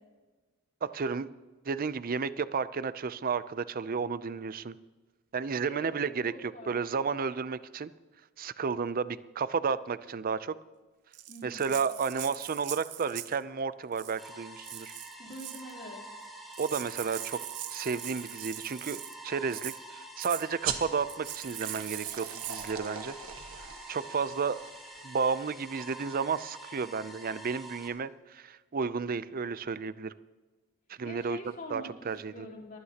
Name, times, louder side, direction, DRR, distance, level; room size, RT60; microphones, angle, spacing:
voice 1, 0.8-1.3 1.6-4.8 5.3-7.9 8.4-10.5 11.4-14.9 16.6-17.4 17.7-23.1 23.6-24.6 25.0-30.1 30.9-31.4 31.7-32.5, right 5 dB, 40° right, 15 dB, 0.5 m, -32 dB
voice 2, 6.3-6.7 11.3-11.7 15.2-16.0 31.0-32.8, left 1 dB, 40° left, -4 dB, 3.5 m, -45 dB
Rattle (instrument), 11.1-13.4 13.9-14.3 14.6-15.7 16.2-16.3 16.5-19.2 19.5-19.8 20.2-20.5 21.1-22.7, right 14 dB, 85° right, 0.7 m, -41 dB
sound 1, 14.2-27.9, right 1 dB, ahead, 2.2 m, -47 dB
sound 2, 20.6-25.7, right 8 dB, 65° right, 1.4 m, -41 dB
22.5 x 16.0 x 2.9 m, 1.3 s
head